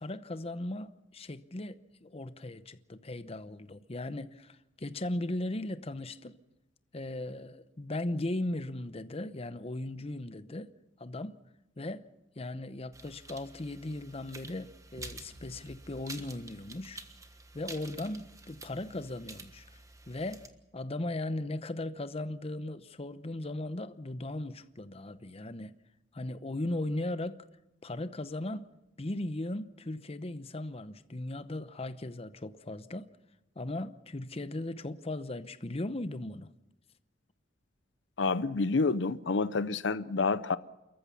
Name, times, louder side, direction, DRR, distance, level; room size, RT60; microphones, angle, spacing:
voice 1, 0.0-6.4 6.9-10.7 11.0-11.4 11.8-12.1 12.4-17.0 17.5-19.7 20.1-20.5 20.7-25.8 26.1-27.4 27.8-28.7 29.0-33.1 33.6-36.5, left 1 dB, 35° left, 0.9 m, -37 dB
sound 1, 12.9-20.5, right 3 dB, 20° right, 1.4 m, -49 dB
sound 2, 15.0-16.8, right 1 dB, 55° right, 1.7 m, -52 dB
voice 2, 38.2-40.6, left 4 dB, 70° left, 0.7 m, -28 dB
29.0 x 14.5 x 7.1 m
head